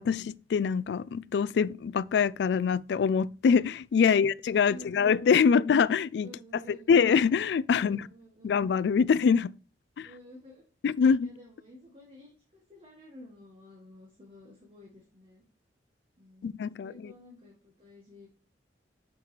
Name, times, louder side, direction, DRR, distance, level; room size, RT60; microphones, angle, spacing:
voice 1, 0.0-6.3 6.9-8.1 8.4-9.5 10.0-10.1 10.8-11.3 16.4-17.1, left 6 dB, 70° left, 0.3 m, -24 dB
voice 2, 4.7-5.7 6.2-7.0 7.8-8.6 10.0-10.7 11.2-15.4 16.2-18.3, equal, 35° right, 1.4 m, -52 dB
6.1 x 5.8 x 3.1 m
head